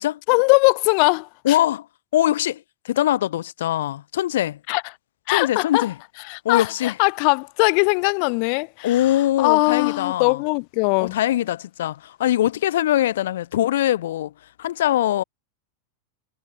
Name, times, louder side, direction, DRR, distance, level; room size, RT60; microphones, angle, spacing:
voice 1, 0.3-1.6 4.7-4.8 5.3-5.9 6.3-9.1 9.4-11.2, left 40 dB or more, 55° left, 1.1 m, -20 dB
voice 2, 1.4-1.9 2.1-4.6 5.3-5.9 6.4-7.0 8.8-10.4 11.0-14.3 14.6-15.2, left 13 dB, 80° left, 1.1 m, -22 dB
supercardioid pair, 130°, 0 cm